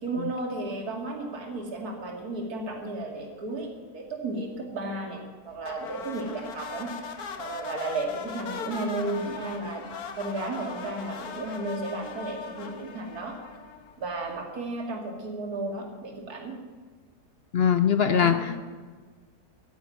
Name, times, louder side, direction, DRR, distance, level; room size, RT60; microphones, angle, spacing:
voice 1, 0.0-6.9 7.4-9.8 10.1-13.3 14.0-16.6 18.1-18.5, right 2 dB, 75° right, 1 dB, 2.9 m, -33 dB
sound 1, 5.6-14.1, left 6 dB, 80° left, 1.7 m, -40 dB
voice 2, 17.5-18.7, left 8 dB, 50° left, 10 dB, 0.8 m, -22 dB
13.0 x 9.4 x 9.3 m, 1.5 s
omnidirectional pair, 1.6 m